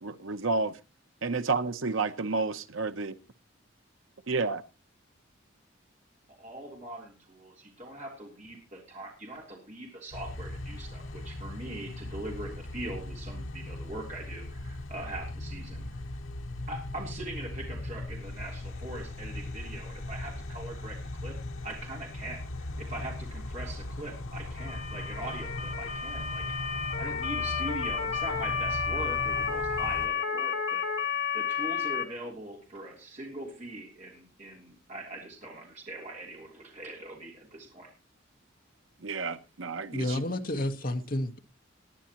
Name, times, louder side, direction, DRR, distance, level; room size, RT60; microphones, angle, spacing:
voice 1, 0.0-0.8 1.2-3.2 4.3-4.6 39.0-40.2, right 4 dB, 80° right, 0.9 m, -30 dB
voice 2, 6.4-15.9 16.7-21.4 21.6-26.5 27.0-30.8 31.3-37.9, right 1 dB, 35° right, 3.3 m, -42 dB
sound 1, 10.1-30.1, left 2 dB, 90° left, 1.0 m, -39 dB
Motor vehicle (road) / Siren, 24.6-32.0, left 6 dB, 70° left, 1.9 m, -31 dB
voice 3, 39.9-41.4, left 1 dB, 45° left, 1.3 m, -30 dB
20.0 x 10.0 x 3.0 m
head